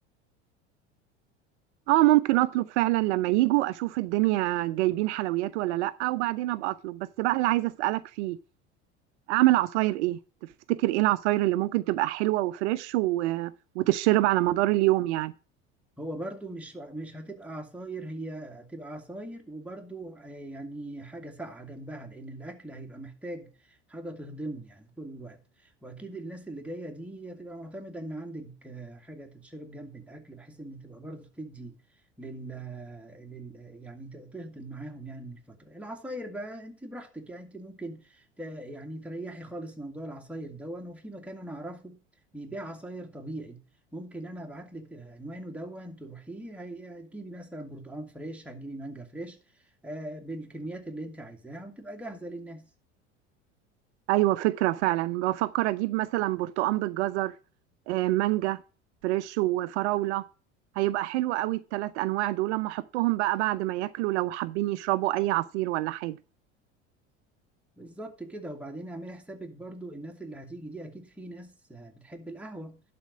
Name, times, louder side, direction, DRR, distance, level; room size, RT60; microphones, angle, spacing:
voice 1, 1.9-8.4 9.3-10.2 10.7-15.3 54.1-57.3 57.9-58.6 59.0-60.2 60.8-66.2, right 17 dB, 70° right, 0.6 m, -26 dB
voice 2, 16.0-31.7 32.2-42.0 42.3-43.6 43.9-52.7 67.8-72.8, right 1 dB, 5° right, 2.0 m, -41 dB
11.0 x 4.3 x 7.2 m
hypercardioid pair, 75°, 35 cm